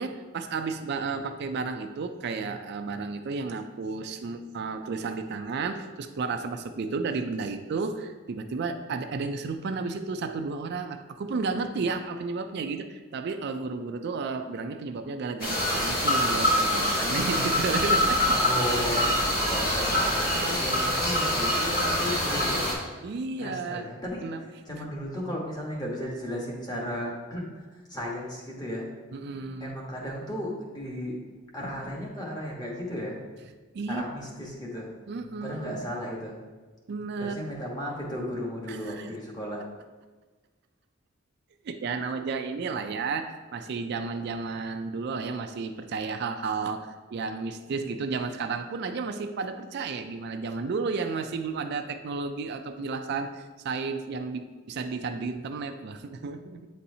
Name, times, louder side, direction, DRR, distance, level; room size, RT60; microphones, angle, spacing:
voice 1, 0.0-18.3 18.9-19.2 23.0-23.9 24.2-24.4 24.7-24.8 29.1-29.8 33.7-34.0 34.3-34.5 35.1-35.8 36.9-37.5 38.7-39.1 41.6-56.7, right 4 dB, 55° right, 7 dB, 0.4 m, -32 dB
sound 1, 15.4-22.7, left 1 dB, 50° left, 1.7 m, -25 dB
voice 2, 18.3-19.1 19.5-22.6 23.4-28.9 29.6-31.2 31.5-33.2 33.9-34.9 35.4-36.4 37.2-39.6, equal, 20° left, -3 dB, 1.2 m, -35 dB
8.4 x 4.2 x 2.7 m, 1.3 s
head